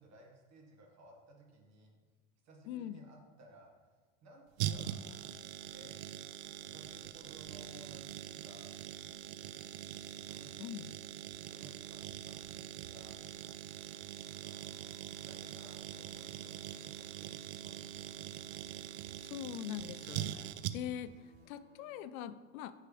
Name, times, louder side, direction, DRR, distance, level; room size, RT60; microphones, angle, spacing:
voice 1, 0.0-1.9 2.4-5.1 5.7-5.9 6.5-8.7 10.2-10.6 11.5-13.2 14.2-14.6 15.2-18.2, right 2 dB, 40° right, 0 dB, 1.7 m, -58 dB
voice 2, 2.7-3.1 10.6-10.9 19.2-22.7, left 10 dB, 85° left, 13 dB, 0.5 m, -43 dB
sound 1, 4.6-21.1 21.3-21.4, right 11 dB, 80° right, 0.5 m, -43 dB
sound 2, 11.3-22.1, left 2 dB, 20° left, 1.2 m, -68 dB
8.7 x 4.7 x 3.3 m, 1.4 s
supercardioid pair, 150°, 41 cm